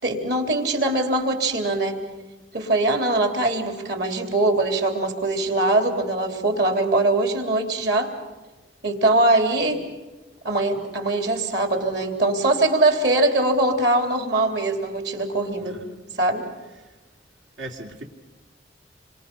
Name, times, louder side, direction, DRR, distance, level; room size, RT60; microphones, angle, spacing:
voice 1, 0.0-2.0 2.5-8.1 8.8-9.9 10.4-15.8 16.2-16.4, right 2 dB, 60° right, 4 dB, 3.4 m, -22 dB
voice 2, 15.6-16.0 17.6-18.0, right 1 dB, 85° right, 1 dB, 2.6 m, -38 dB
27.0 x 25.0 x 5.7 m, 1.2 s
head